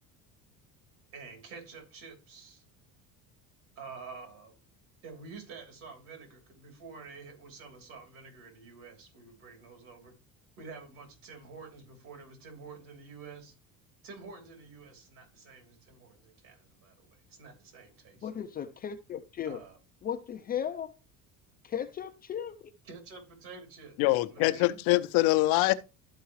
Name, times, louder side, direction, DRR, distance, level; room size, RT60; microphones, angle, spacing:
voice 1, 1.1-2.6 3.7-4.5 5.0-10.1 10.6-13.5 14.0-18.3 19.4-19.8 22.8-24.0 24.3-24.8, right 4 dB, 65° right, 3.2 m, -48 dB
voice 2, 18.2-19.6 20.0-21.0 21.6-22.7, left 9 dB, 25° left, 0.4 m, -36 dB
voice 3, 24.0-25.7, left 19 dB, 80° left, 0.7 m, -24 dB
12.5 x 4.6 x 3.1 m
cardioid pair, 160°, 37 cm